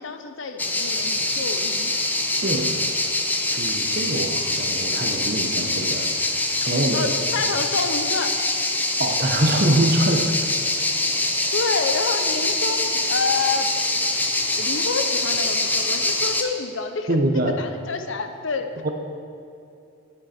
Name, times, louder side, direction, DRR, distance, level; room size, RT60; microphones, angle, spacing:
voice 1, 0.0-1.9 4.1-4.3 6.9-8.4 11.5-13.7 14.6-17.2 17.5-18.9, left 4 dB, 60° left, 7 dB, 0.6 m, -28 dB
sound 1, 0.6-16.4, left 2 dB, 10° left, 0.4 m, -24 dB
voice 2, 2.4-2.7 3.6-6.3 6.6-7.1 9.0-10.3 17.1-17.6 18.8-18.9, right 1 dB, 45° right, 3 dB, 0.8 m, -23 dB
9.3 x 7.7 x 4.3 m, 2.6 s
head